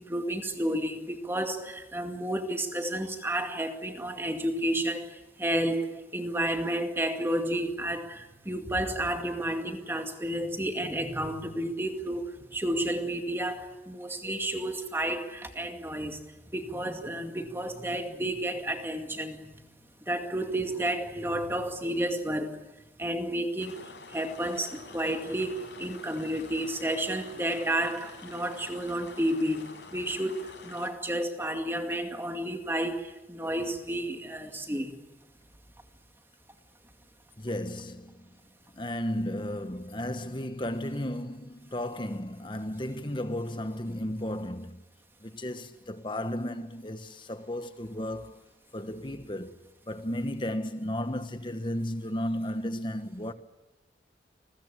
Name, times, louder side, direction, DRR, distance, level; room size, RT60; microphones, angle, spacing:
voice 1, 0.0-19.5 20.1-22.6 23.0-34.9, right 1 dB, 15° right, 2.2 m, -31 dB
sound 1, 23.6-30.9, left 3 dB, 90° left, 7.6 m, -47 dB
voice 2, 37.4-38.3 38.7-44.8 45.2-48.4 48.7-49.6 49.9-53.3, left 1 dB, 25° left, 1.5 m, -34 dB
30.0 x 21.5 x 8.4 m
head